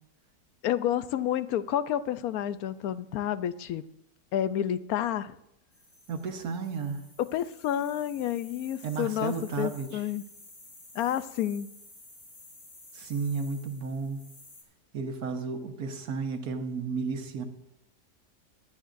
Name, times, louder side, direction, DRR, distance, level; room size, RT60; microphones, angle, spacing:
voice 1, 0.6-3.8 4.3-5.4 7.2-10.2 10.9-11.7, left 11 dB, 70° left, 14 dB, 1.0 m, -30 dB
sound 1, 5.7-14.6, left 2 dB, 50° left, 4.1 m, -53 dB
voice 2, 6.1-7.0 8.8-10.0 12.9-14.2 14.9-17.4, right 5 dB, 65° right, 5 dB, 1.7 m, -33 dB
19.5 x 12.5 x 2.6 m, 0.83 s
omnidirectional pair, 1.8 m